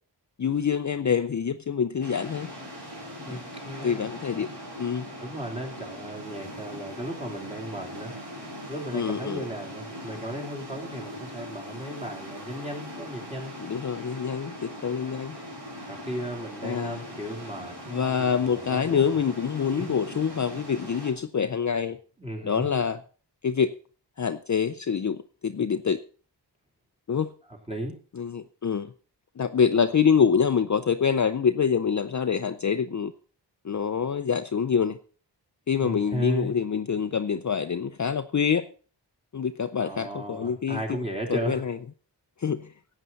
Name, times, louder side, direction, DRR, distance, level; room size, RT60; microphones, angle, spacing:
voice 1, 0.4-2.5 3.3-3.4 3.8-4.5 4.8-5.1 8.9-9.4 13.6-15.4 16.6-17.0 17.9-22.0 22.4-23.0 23.4-23.7 24.2-26.0 27.1-27.3 28.1-28.9 29.4-33.1 33.6-35.0 35.7-38.7 39.3-41.0 41.3-41.8 42.4-42.7, left 7 dB, 45° left, 9 dB, 0.6 m, -26 dB
sound 1, 2.0-21.1, equal, 70° right, 5.9 m, -41 dB
voice 2, 3.2-4.0 5.2-8.2 8.7-13.5 15.7-19.2 19.8-19.9 22.2-22.7 27.7-27.9 35.8-36.5 39.8-41.6, right 1 dB, 15° right, 1 dB, 3.2 m, -35 dB
15.0 x 9.0 x 4.0 m, 0.39 s
wide cardioid pair, 105°, 42 cm